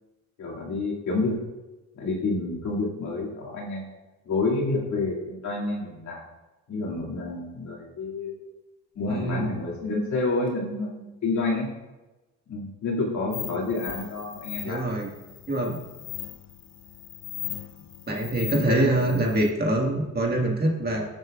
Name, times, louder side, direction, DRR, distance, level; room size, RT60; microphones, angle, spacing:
voice 1, 0.4-1.4 1.9-3.9 4.3-6.2 6.7-8.4 9.0-11.7 12.5-14.8 18.5-18.9, left 3 dB, 70° left, -3 dB, 2.5 m, -29 dB
voice 2, 9.1-9.6 14.7-15.1 15.5-15.8 18.1-21.1, right 1 dB, 30° right, 0 dB, 1.8 m, -25 dB
sound 1, 13.3-19.5, left 12 dB, 45° left, 0.5 m, -39 dB
14.5 x 7.7 x 2.5 m, 1.1 s
cardioid pair, 90°, 30 cm